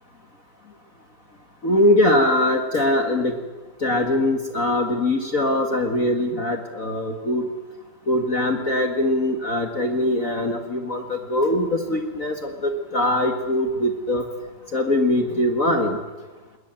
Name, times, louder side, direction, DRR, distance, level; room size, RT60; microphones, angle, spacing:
voice 1, 1.6-3.3 3.8-7.5 8.1-14.2 14.7-16.0, left 1 dB, 45° left, 4 dB, 1.0 m, -22 dB
22.0 x 20.0 x 9.0 m, 1.3 s
omnidirectional pair, 4.1 m